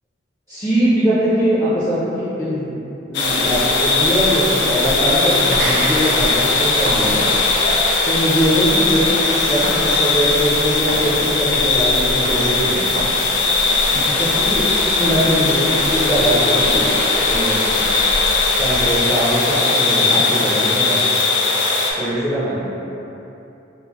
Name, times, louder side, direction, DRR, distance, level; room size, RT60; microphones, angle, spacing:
voice 1, 0.5-2.7 3.1-7.4 8.0-13.0 13.9-14.6 15.0-16.9 17.3-17.8 18.6-21.2 22.0-22.6, equal, 10° left, -13 dB, 0.5 m, -21 dB
sound 1, 3.1-21.9, left 3 dB, 60° left, 0.4 m, -18 dB
sound 2, 3.2-19.0, right 1 dB, 55° right, 0.3 m, -30 dB
3.7 x 2.0 x 2.9 m, 2.9 s
head